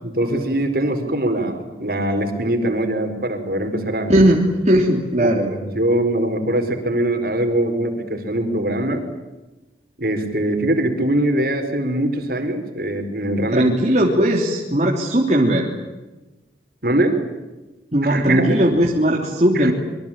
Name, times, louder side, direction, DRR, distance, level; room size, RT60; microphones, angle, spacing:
voice 1, 0.0-4.1 5.2-9.1 10.0-13.7 16.8-17.2 18.0-18.6 19.5-19.7, right 1 dB, 55° right, 6 dB, 4.7 m, -22 dB
voice 2, 4.1-5.6 13.5-15.7 17.9-19.7, right 1 dB, 40° right, -1 dB, 3.2 m, -17 dB
26.5 x 23.5 x 8.9 m, 1.1 s
head